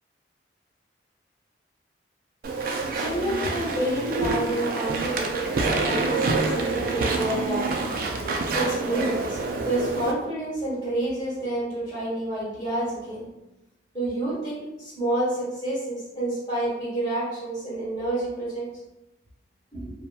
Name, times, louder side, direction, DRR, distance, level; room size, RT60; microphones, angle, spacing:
Walk footsteps / Chatter / Squeak, 2.4-10.1, right 3 dB, 50° right, 0.3 m, -27 dB
voice 1, 2.6-13.3 13.9-18.7 19.7-19.9, right 1 dB, 25° left, -8 dB, 1.2 m, -29 dB
2.8 x 2.2 x 2.3 m, 0.94 s
head